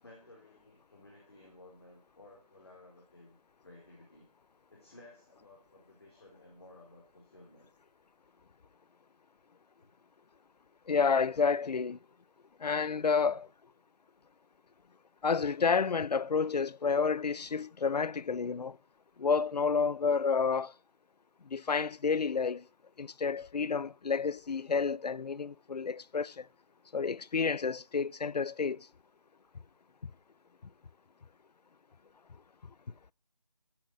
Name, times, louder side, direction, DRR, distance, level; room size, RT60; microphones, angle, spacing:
voice 1, 0.0-3.4 3.6-4.3 4.7-7.7 9.8-9.9, left 2 dB, 40° left, 4.3 m, -56 dB
voice 2, 10.9-12.0 12.6-13.5 15.2-18.8 19.2-20.7 21.5-22.6 23.0-26.5 26.9-28.9, left 5 dB, 85° left, 0.5 m, -30 dB
15.5 x 7.6 x 6.2 m
figure-of-eight pair, 175°, 20 cm